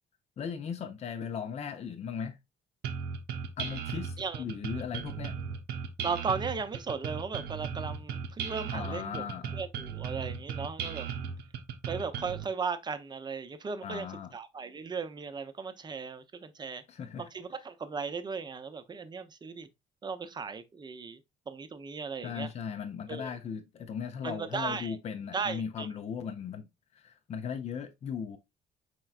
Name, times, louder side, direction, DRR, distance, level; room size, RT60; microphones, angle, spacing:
voice 1, 0.4-2.4 3.6-5.3 8.7-9.6 13.8-14.3 16.9-17.3 22.2-28.4, left 7 dB, 40° left, 0.6 m, -38 dB
sound 1, 2.8-12.4, right 6 dB, 75° right, 0.8 m, -37 dB
voice 2, 6.0-9.3 9.5-11.1 11.9-14.1 14.3-16.8 17.2-19.7 20.0-21.2 21.5-22.5 23.1-23.3 24.2-24.9 25.3-25.9, right 5 dB, 25° right, 0.6 m, -36 dB
4.5 x 4.3 x 2.4 m
cardioid pair, 110°, 17 cm